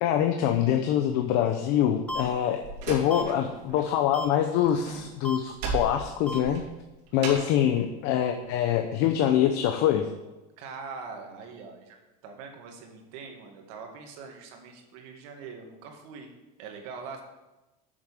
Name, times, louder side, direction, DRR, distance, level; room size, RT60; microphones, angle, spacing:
voice 1, 0.0-6.6 7.1-10.1, left 10 dB, 60° left, 5 dB, 0.8 m, -25 dB
sound 1, 2.1-2.2 3.1-3.2 4.1-4.3 5.2-5.4 6.3-6.4 7.3-7.4, left 2 dB, 5° left, 0.8 m, -33 dB
Slam, 2.1-3.9 4.2-7.6, right 3 dB, 90° right, 2.5 m, -36 dB
voice 2, 7.1-7.5 10.6-12.0 12.2-16.3 16.6-17.2, right 5 dB, 70° right, 3 dB, 2.1 m, -43 dB
7.3 x 6.5 x 7.4 m, 1.1 s
supercardioid pair, 135°, 20 cm